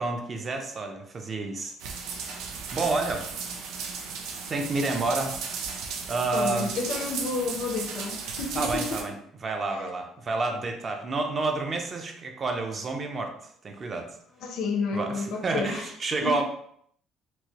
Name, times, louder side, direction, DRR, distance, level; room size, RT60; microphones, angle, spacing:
voice 1, 0.0-1.7 2.1-2.4 2.7-3.3 4.5-5.6 6.1-6.7 8.5-9.1 9.4-14.1 14.9-16.4, right 3 dB, 25° right, 3 dB, 0.4 m, -29 dB
sound 1, 1.8-9.0, right 5 dB, 80° right, 0.6 m, -35 dB
voice 2, 6.3-9.0 9.7-9.9 14.4-15.8 16.2-16.4, left 4 dB, 60° left, 3 dB, 0.6 m, -31 dB
4.5 x 2.0 x 2.8 m, 0.67 s
cardioid pair, 170°, 0 cm